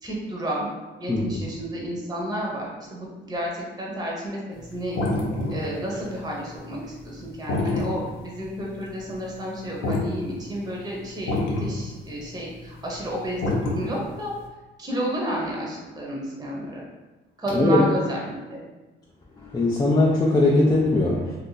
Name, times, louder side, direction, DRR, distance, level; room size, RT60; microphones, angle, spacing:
voice 1, 0.0-0.7 1.0-5.0 5.5-14.3 14.8-16.8 17.4-18.6, equal, 20° right, -3 dB, 0.9 m, -31 dB
voice 2, 1.1-1.4 17.5-17.8 19.4-21.4, left 2 dB, 20° left, -5 dB, 0.5 m, -20 dB
sound 1, 4.6-10.1 10.4-10.5 11.0-11.1 11.3-14.3, left 2 dB, 85° left, 0.7 m, -27 dB
2.7 x 2.5 x 3.9 m, 1.2 s
cardioid pair, 90°, 20 cm